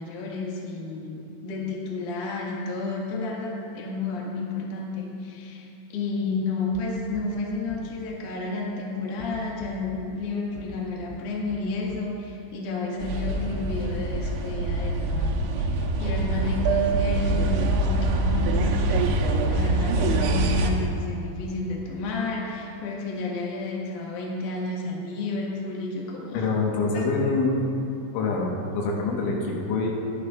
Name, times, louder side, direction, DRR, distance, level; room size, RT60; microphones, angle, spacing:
voice 1, 0.0-26.5 26.8-27.0, left 3 dB, 55° left, -3 dB, 2.4 m, -31 dB
sound 1, 6.7-6.8 7.1-7.2 7.7-7.8 9.2-10.0 10.5-10.8 11.1-11.2 11.5-11.6 11.9-12.0 13.5-13.8 14.1-14.2 15.4-15.5 15.9-16.0 16.4-16.5 17.9-18.7 19.3-19.5 19.8-19.9 20.2-20.3 20.6-20.7, right 1 dB, 15° right, 1.7 m, -42 dB
sound 2, 13.0-20.7, right 2 dB, 85° right, 3.4 m, -24 dB
voice 2, 26.3-27.6 28.1-29.9, left 3 dB, 85° left, -1 dB, 3.7 m, -25 dB
18.0 x 12.0 x 2.4 m, 2.7 s
omnidirectional pair, 5.5 m